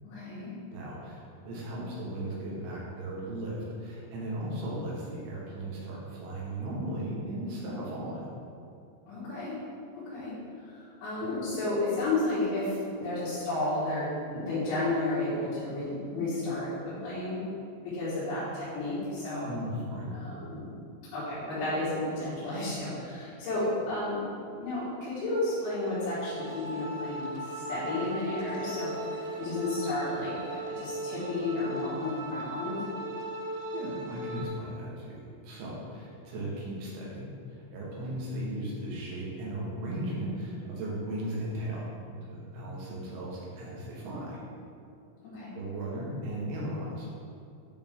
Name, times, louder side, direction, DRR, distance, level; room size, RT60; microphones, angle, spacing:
voice 1, 0.0-0.5 9.1-9.6 9.9-17.4 17.8-19.5 20.1-20.7 21.1-24.2 24.6-32.8 45.2-45.5, left 2 dB, 80° left, -12 dB, 3.9 m, -32 dB
voice 2, 0.7-8.3 19.4-20.1 33.5-37.3 37.7-41.8 42.3-44.4 45.5-47.2, right 1 dB, 70° right, -5 dB, 2.9 m, -36 dB
sound 1, 25.6-34.5, right 1 dB, 90° right, 2.4 m, -38 dB
9.0 x 3.4 x 3.6 m, 2.5 s
omnidirectional pair, 5.3 m